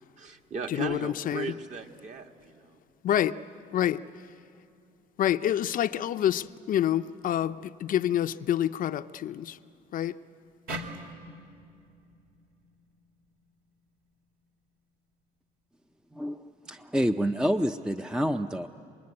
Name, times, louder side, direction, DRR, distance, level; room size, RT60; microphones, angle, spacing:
voice 1, 0.2-2.8, right 5 dB, 45° right, 1.7 m, -37 dB
voice 2, 0.7-1.5 3.0-3.4 3.7-4.0 5.2-9.6 9.9-10.2, left 11 dB, 55° left, 0.6 m, -27 dB
sound 1, 10.7-13.9, right 1 dB, 60° right, 2.6 m, -43 dB
voice 3, 16.1-18.7, equal, 5° right, 0.5 m, -28 dB
26.0 x 21.0 x 9.7 m
cardioid pair, 110°, 17 cm